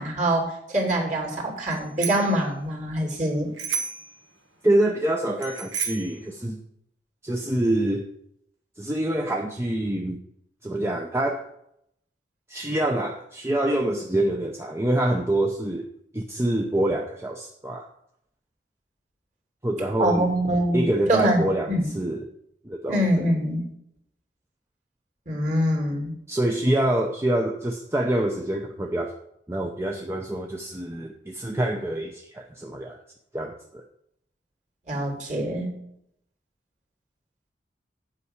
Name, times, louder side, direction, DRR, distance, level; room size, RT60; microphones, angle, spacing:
voice 1, 0.0-3.5 20.0-21.9 22.9-23.7 25.3-26.2 34.9-35.8, right 1 dB, 40° right, 1 dB, 2.7 m, -24 dB
Bicycle bell, 1.7-2.4 3.6-4.1 5.4-6.2, right 6 dB, 80° right, 1.5 m, -31 dB
voice 2, 4.6-6.6 7.2-8.1 8.8-10.2 10.6-11.5 12.5-15.9 16.1-17.9 19.6-20.3 20.7-22.3 22.6-23.0 26.3-29.1 29.5-33.0 33.3-33.8, right 1 dB, 15° right, 2 dB, 0.6 m, -26 dB
8.6 x 5.5 x 8.0 m, 0.75 s
head